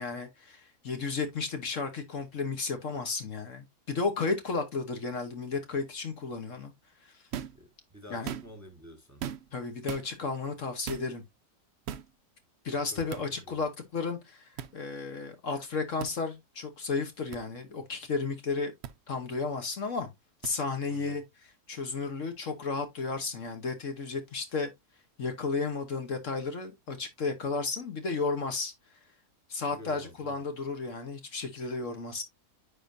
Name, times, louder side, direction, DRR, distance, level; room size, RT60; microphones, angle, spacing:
voice 1, 0.0-6.7 7.0-7.1 8.1-8.3 9.5-11.2 12.6-18.7 19.1-20.1 20.4-24.7 25.2-28.7 29.5-32.2, left 4 dB, 55° left, 1.4 m, -33 dB
sound 1, 7.3-7.6 8.1-8.7 9.2-9.6 9.9-10.1 10.9-11.1 11.9-12.1 13.1-13.2 14.6-14.7 16.0-16.1 17.3-17.4 18.8-18.9 20.4-20.5, right 9 dB, 65° right, 0.6 m, -38 dB
voice 2, 7.5-9.2 12.9-13.6 20.9-21.2 29.7-30.4, left 1 dB, 10° right, 1.4 m, -49 dB
9.7 x 4.5 x 2.7 m
omnidirectional pair, 1.6 m